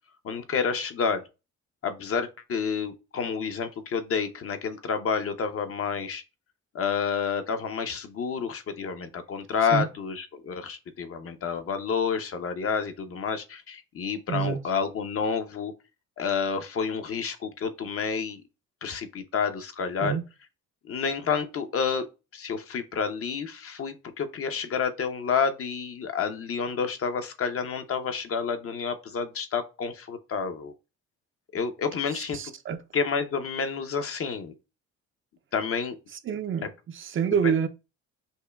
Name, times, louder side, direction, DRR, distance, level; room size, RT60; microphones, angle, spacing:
voice 1, 0.2-1.2 1.8-6.2 6.7-15.7 16.2-18.4 18.8-20.2 20.9-22.1 22.3-30.7 31.5-32.4 32.9-34.5 35.5-36.0 37.4-37.6, left 6 dB, 50° left, 0.7 m, -29 dB
voice 2, 14.3-14.7 20.0-20.2 32.1-32.8 36.3-37.7, right 7 dB, 45° right, 0.4 m, -27 dB
5.4 x 2.1 x 2.3 m
cardioid pair, 90°, 30 cm